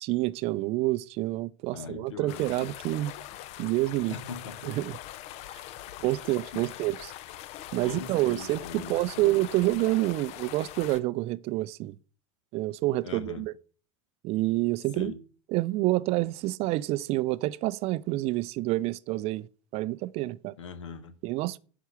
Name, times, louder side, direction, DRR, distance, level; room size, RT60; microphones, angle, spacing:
voice 1, 0.0-3.1 3.6-4.1 4.6-5.0 5.5-5.6 6.0-7.1 7.7-12.0 12.5-13.5 14.2-15.1 15.5-19.5 19.7-20.6 21.2-21.6, right 18 dB, 40° right, 0.4 m, -28 dB
voice 2, 1.7-2.7 4.1-4.7 6.5-6.8 7.8-9.5 13.0-13.5 14.9-15.2 20.6-21.2, left 5 dB, 70° left, 1.5 m, -41 dB
sound 1, 2.3-11.0, left 13 dB, 40° left, 0.6 m, -42 dB
9.9 x 4.6 x 6.9 m
figure-of-eight pair, 85°, 16 cm